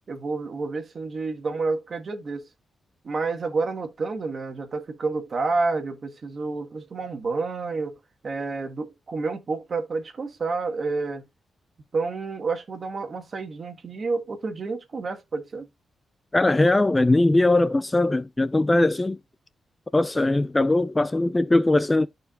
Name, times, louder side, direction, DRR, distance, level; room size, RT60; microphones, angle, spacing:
voice 1, 0.1-2.5 3.0-8.0 8.2-11.2 11.9-15.7, right 3 dB, 40° right, 1.5 m, -29 dB
voice 2, 16.3-19.2 19.9-22.1, left 2 dB, 15° left, 0.3 m, -20 dB
13.0 x 4.6 x 2.3 m
wide cardioid pair, 140°, 0 cm